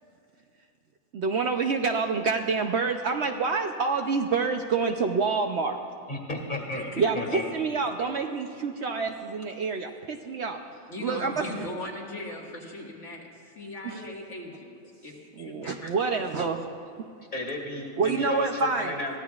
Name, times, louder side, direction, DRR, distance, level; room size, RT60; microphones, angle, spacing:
voice 1, 1.1-5.8 7.0-10.6 11.0-11.5 13.8-14.0 15.4-16.6 18.0-18.9, right 4 dB, 60° right, 4 dB, 0.9 m, -27 dB
voice 2, 6.1-6.9 7.1-7.5 17.3-19.2, left 2 dB, 35° left, 1 dB, 2.3 m, -33 dB
voice 3, 6.7-7.3 10.9-14.7 15.0-15.9, left 1 dB, 55° left, -2 dB, 2.1 m, -39 dB
22.5 x 16.0 x 2.4 m, 2.5 s
omnidirectional pair, 1.4 m